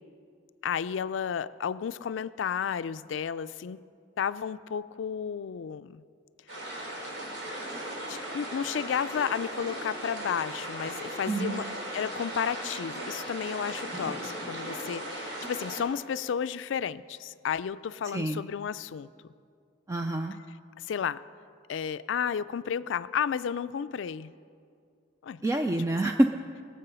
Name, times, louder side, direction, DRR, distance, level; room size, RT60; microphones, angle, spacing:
voice 1, 0.6-3.8 4.2-6.0 8.1-11.7 11.9-19.1 20.9-21.2 21.7-24.3 25.2-25.4, left 7 dB, 80° left, 15 dB, 0.4 m, -32 dB
sound 1, 6.5-15.8, right 1 dB, 75° right, 4.0 m, -37 dB
voice 2, 11.3-11.7 18.1-18.4 19.9-20.3 25.4-26.3, right 1 dB, 15° right, 4 dB, 0.3 m, -27 dB
21.0 x 7.6 x 5.6 m, 2.3 s
head